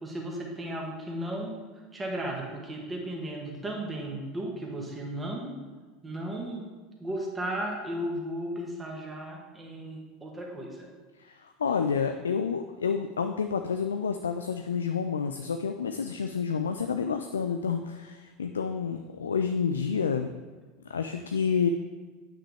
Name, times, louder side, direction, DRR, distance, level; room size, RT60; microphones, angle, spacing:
voice 1, 0.0-1.6 1.9-5.6 6.0-6.7 7.0-10.9, right 1 dB, 15° right, -1 dB, 1.8 m, -35 dB
voice 2, 11.2-20.3 20.9-21.7, left 6 dB, 80° left, 7 dB, 0.3 m, -29 dB
8.9 x 5.9 x 3.4 m, 1.4 s
figure-of-eight pair, 75°, 0 cm